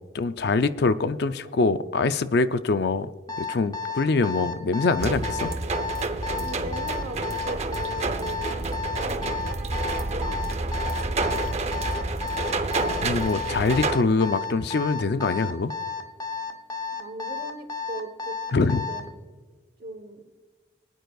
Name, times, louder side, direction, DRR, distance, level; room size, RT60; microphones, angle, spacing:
voice 1, 0.1-3.1 3.4-5.5 13.0-15.7 18.5-18.8, left 3 dB, 55° left, 0.4 m, -24 dB
Alarm, 3.3-19.1, left 5 dB, 20° left, 0.7 m, -32 dB
sound 1, 5.0-14.0, right 3 dB, 35° right, 0.7 m, -29 dB
voice 2, 6.3-8.6 9.0-9.6 10.1-12.1 16.9-19.3 19.8-20.2, right 2 dB, 50° right, 1.1 m, -39 dB
23.0 x 9.2 x 2.4 m
head